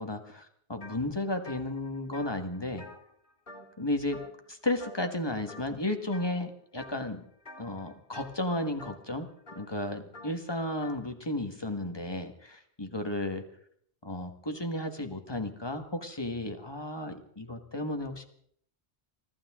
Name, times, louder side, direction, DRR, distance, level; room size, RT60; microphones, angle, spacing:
voice 1, 0.0-2.8 3.8-4.2 4.5-7.2 7.6-9.3 9.5-13.4 14.0-18.3, left 1 dB, 20° left, 6 dB, 1.8 m, -33 dB
sound 1, 0.8-1.0 1.3-3.8 4.1-4.5 4.8-5.2 5.5-6.3 6.8-7.1 7.4-11.1, left 1 dB, 45° left, 3.1 m, -49 dB
24.5 x 15.0 x 3.8 m, 0.64 s
omnidirectional pair, 1.1 m